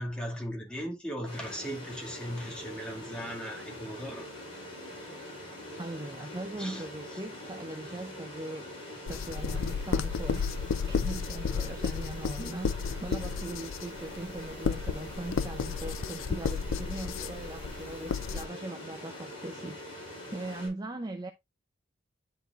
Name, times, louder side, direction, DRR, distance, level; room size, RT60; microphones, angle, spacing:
voice 1, 0.0-4.3 6.6-6.9, equal, 5° left, 2.1 m, -37 dB
sound 1, 1.2-20.7, left 1 dB, 30° left, 4.7 m, -44 dB
voice 2, 5.8-8.7 9.1-10.6 10.8-21.3, right 2 dB, 20° right, 0.5 m, -40 dB
sound 2, 9.1-18.5, left 5 dB, 85° left, 0.5 m, -33 dB
11.5 x 4.2 x 2.4 m
head